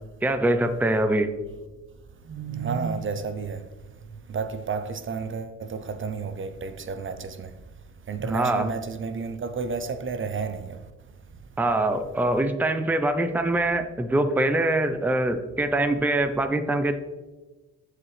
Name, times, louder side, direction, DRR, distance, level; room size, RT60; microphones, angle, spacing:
voice 1, 0.2-1.3 8.3-8.7 11.6-16.9, right 1 dB, 5° right, 0.6 m, -23 dB
voice 2, 2.3-3.6 4.3-7.5 8.1-10.8, right 5 dB, 40° right, 0.8 m, -31 dB
14.5 x 5.0 x 3.3 m
cardioid pair, 90°, 30 cm